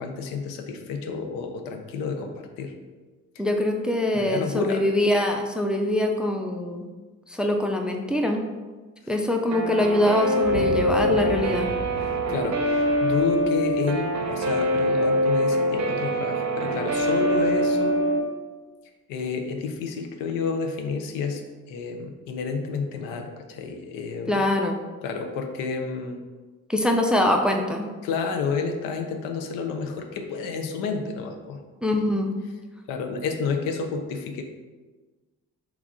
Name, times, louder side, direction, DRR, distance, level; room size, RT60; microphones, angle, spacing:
voice 1, 0.0-2.7 4.1-4.9 12.0-18.0 19.1-21.4 21.7-24.4 25.0-26.2 28.0-31.6 32.9-34.4, left 5 dB, 85° left, 5 dB, 0.5 m, -30 dB
voice 2, 3.4-6.9 7.3-8.4 9.1-11.7 24.3-24.8 26.7-27.9 31.8-32.3, left 1 dB, 5° right, 3 dB, 0.3 m, -23 dB
Guitar, 9.5-18.2, equal, 55° right, 0.6 m, -24 dB
sound 1, 10.4-14.8, left 2 dB, 55° left, 1.0 m, -36 dB
3.0 x 2.4 x 3.6 m, 1.3 s
supercardioid pair, 65°, 33 cm